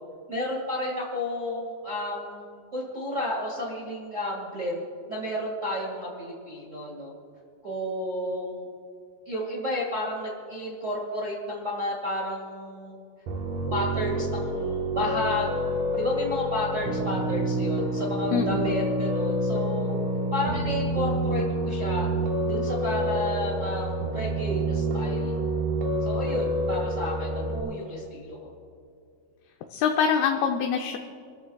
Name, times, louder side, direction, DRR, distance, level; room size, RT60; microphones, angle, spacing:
voice 1, 0.3-2.5 2.7-4.8 5.1-7.1 7.6-8.6 9.2-12.9 13.7-15.5 15.9-20.0 20.3-22.1 22.4-25.3 26.0-28.5, left 1 dB, 45° right, -3 dB, 0.9 m, -32 dB
Piano, 13.3-27.6, right 1 dB, 65° right, 2.3 m, -28 dB
voice 2, 18.3-18.9 29.7-31.0, left 7 dB, 75° left, 3 dB, 2.4 m, -25 dB
30.0 x 13.5 x 2.3 m, 2.4 s
omnidirectional pair, 4.8 m